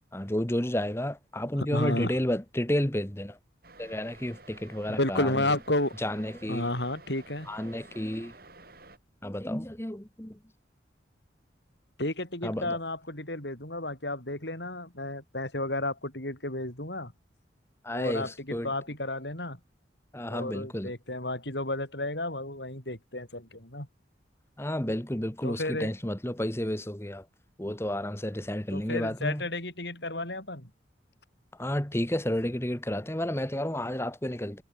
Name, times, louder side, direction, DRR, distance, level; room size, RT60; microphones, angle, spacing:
voice 1, 0.1-3.4 3.8-5.5 6.0-6.7 7.5-8.3 9.2-10.4 12.4-12.8 17.8-18.7 20.1-20.9 24.6-27.2 27.6-29.4 31.6-34.6, left 1 dB, 15° left, 1.4 m, -31 dB
voice 2, 1.6-2.2 5.0-6.0 6.5-7.5 12.0-17.1 17.9-19.6 20.3-23.9 25.4-25.9 28.7-30.7, left 1 dB, 65° left, 7.9 m, -32 dB
sound 1, 3.6-9.0, right 3 dB, 50° right, 7.9 m, -52 dB
head